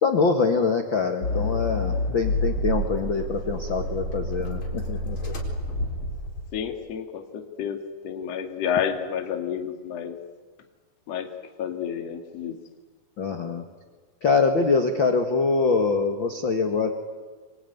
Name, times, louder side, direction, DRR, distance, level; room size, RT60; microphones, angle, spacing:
voice 1, 0.0-5.3 13.2-13.6 14.2-16.9, left 4 dB, 60° left, 5 dB, 1.2 m, -24 dB
Accelerating revving vroom, 1.2-6.6, left 1 dB, 30° left, 4.7 m, -28 dB
voice 2, 6.5-10.2 11.1-11.3 11.6-12.6, left 8 dB, 45° left, 4 dB, 2.7 m, -30 dB
26.5 x 23.5 x 9.4 m, 1.4 s
omnidirectional pair, 5.0 m